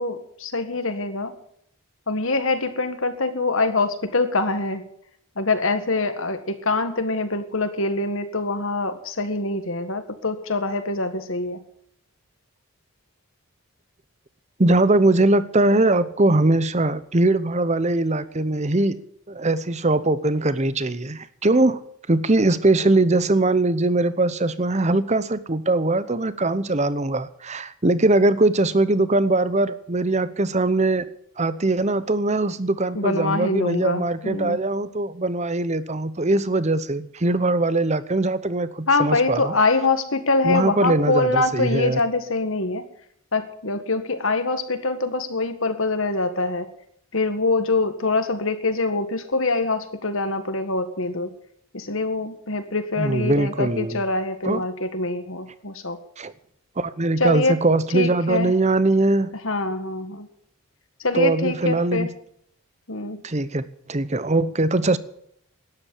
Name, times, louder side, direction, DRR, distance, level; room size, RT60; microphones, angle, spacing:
voice 1, 0.0-1.4 2.1-4.8 5.4-11.6 33.0-34.6 38.9-42.9 43.3-46.7 47.1-51.3 51.7-56.0 57.2-57.6 57.9-58.5 59.4-60.3 61.0-62.1 62.9-63.2, left 3 dB, 60° left, 9 dB, 1.8 m, -24 dB
voice 2, 14.6-19.0 19.3-21.8 22.1-31.1 31.4-39.5 40.4-42.0 53.0-54.0 54.4-54.6 56.2-56.3 56.8-59.3 61.1-62.1 63.2-65.0, right 2 dB, 30° right, 15 dB, 0.9 m, -21 dB
13.0 x 10.5 x 10.0 m, 0.69 s
head